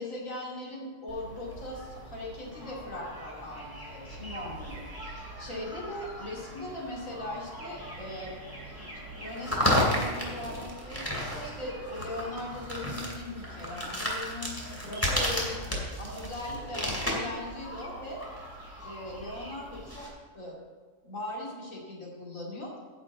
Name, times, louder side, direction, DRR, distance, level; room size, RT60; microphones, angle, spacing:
voice 1, 0.0-8.3 9.1-14.6 14.8-15.6 16.0-18.2 18.8-20.1 20.3-20.6 21.0-22.7, left 1 dB, 70° left, -3 dB, 3.0 m, -39 dB
sound 1, 1.1-20.1, equal, 10° left, 2.5 m, -35 dB
10.5 x 6.1 x 7.9 m, 1.5 s
omnidirectional pair, 1.4 m